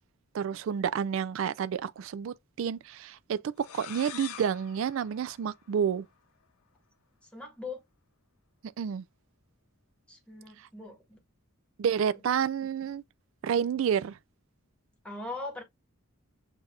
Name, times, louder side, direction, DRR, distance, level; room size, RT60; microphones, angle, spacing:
voice 1, 0.3-6.0 8.8-9.0 10.6-10.7 11.8-13.0 13.4-14.2, right 7 dB, 65° right, 0.3 m, -30 dB
sound 1, 3.6-6.2, left 9 dB, 90° left, 0.5 m, -46 dB
voice 2, 7.2-7.8 10.1-11.2 15.0-15.6, left 3 dB, 5° left, 1.6 m, -40 dB
7.2 x 2.7 x 2.3 m
head